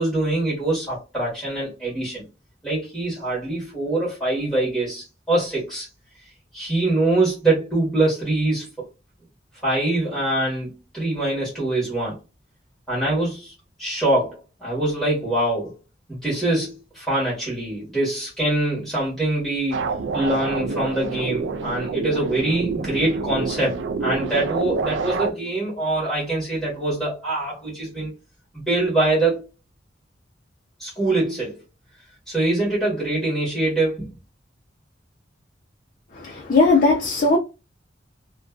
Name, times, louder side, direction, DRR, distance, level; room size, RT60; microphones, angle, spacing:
voice 1, 0.0-2.2 2.6-5.9 6.5-8.7 9.6-12.2 12.9-13.5 13.8-15.7 16.1-19.8 20.1-28.1 28.5-29.4 30.8-31.6 32.3-34.1, right 2 dB, ahead, 1.1 m, -24 dB
sound 1, 19.7-25.3, right 4 dB, 75° right, 0.3 m, -27 dB
voice 2, 36.1-37.4, left 3 dB, 45° left, 0.5 m, -18 dB
2.5 x 2.2 x 2.4 m
head